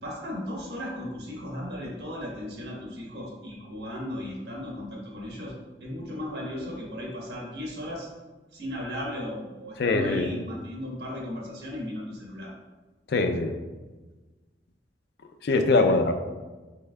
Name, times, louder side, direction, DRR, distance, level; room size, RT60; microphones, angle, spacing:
voice 1, 0.0-8.1 8.5-12.5 15.4-16.0, left 1 dB, 65° right, -3 dB, 1.2 m, -36 dB
voice 2, 9.8-10.3 13.1-13.5 15.4-16.1, left 3 dB, 60° left, 6 dB, 0.4 m, -22 dB
5.4 x 3.6 x 2.3 m, 1.3 s
head